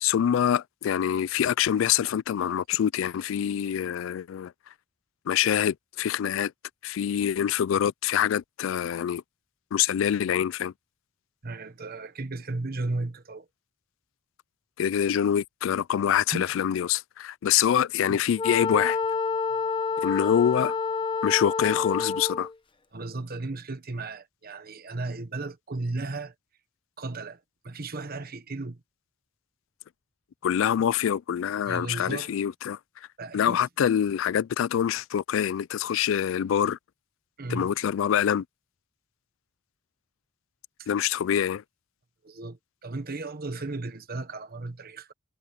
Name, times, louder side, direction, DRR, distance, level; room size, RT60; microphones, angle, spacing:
voice 1, 0.0-4.5 5.3-6.5 6.8-9.2 9.7-10.7 14.8-19.0 20.0-20.8 21.2-22.5 30.4-32.8 33.3-36.8 37.5-38.4 40.9-41.6, left 9 dB, 65° left, 0.3 m, -25 dB
voice 2, 11.4-13.5 16.3-16.6 18.1-18.2 22.9-26.3 27.0-28.8 31.7-32.3 33.2-33.6 37.4-37.7 40.8-40.9 42.2-45.1, right 2 dB, 45° right, 1.2 m, -35 dB
Wind instrument woodwind instrument, 18.4-22.5, left 5 dB, 25° left, 0.9 m, -28 dB
head